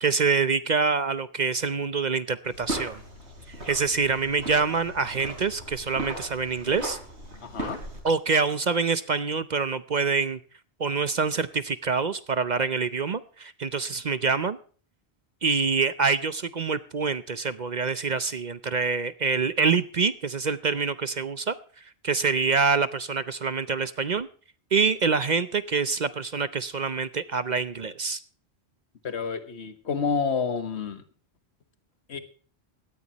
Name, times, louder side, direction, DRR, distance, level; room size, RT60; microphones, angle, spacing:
voice 1, 0.0-3.0 3.5-7.0 8.0-10.4 10.8-14.6 15.4-21.5 22.0-24.3 24.7-28.2, right 5 dB, 45° right, 14 dB, 0.8 m, -26 dB
sound 1, 2.5-8.0, right 1 dB, 85° right, 5.1 m, -37 dB
voice 2, 7.4-7.8 29.0-31.0 32.1-32.2, left 5 dB, 75° left, 10 dB, 1.6 m, -29 dB
18.0 x 14.0 x 3.0 m, 0.41 s
omnidirectional pair, 1.1 m